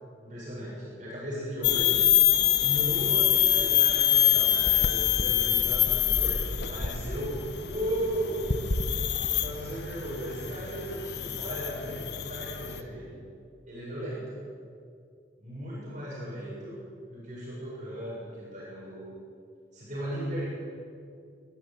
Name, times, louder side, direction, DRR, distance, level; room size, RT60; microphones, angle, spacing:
voice 1, 0.2-2.0 2.6-8.5 9.4-13.2 13.7-14.4 15.4-16.8 17.1-19.1 19.7-20.5, right 1 dB, 40° right, -7 dB, 7.3 m, -36 dB
sound 1, 1.6-12.8, left 10 dB, 60° left, 1.2 m, -25 dB
23.5 x 13.5 x 9.1 m, 2.4 s
head